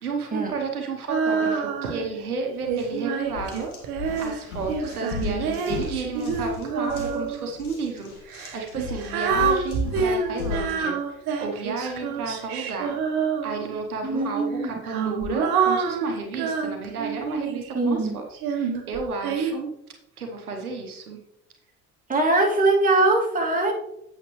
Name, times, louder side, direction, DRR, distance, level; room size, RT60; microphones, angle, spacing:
voice 1, 0.0-3.7 4.0-13.0 13.4-19.7 20.2-21.2, right 4 dB, 90° right, 2 dB, 1.0 m, -32 dB
Female singing, 1.1-2.1 2.7-7.5 8.3-13.8 14.6-17.7 18.4-19.5, right 5 dB, 55° right, 1.2 m, -27 dB
sound 1, 2.6-2.9 3.3-10.8, left 5 dB, 85° left, 1.7 m, -36 dB
voice 2, 14.0-14.7 17.7-18.2 22.1-23.7, right 2 dB, 20° right, -1 dB, 2.3 m, -21 dB
8.3 x 7.1 x 3.0 m, 0.82 s
hypercardioid pair, 60°, 43 cm